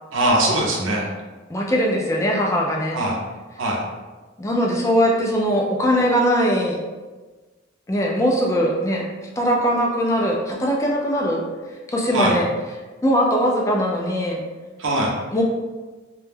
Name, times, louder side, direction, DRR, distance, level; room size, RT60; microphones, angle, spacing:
voice 1, 0.1-1.1 2.9-3.2 3.6-3.8 12.1-12.4 14.8-15.1, right 1 dB, 80° right, -1 dB, 0.6 m, -21 dB
voice 2, 1.5-3.0 4.4-6.8 7.9-11.5 11.9-12.4 13.0-14.4 15.3-15.4, equal, 15° left, -1 dB, 0.3 m, -21 dB
2.2 x 2.1 x 3.2 m, 1.3 s
head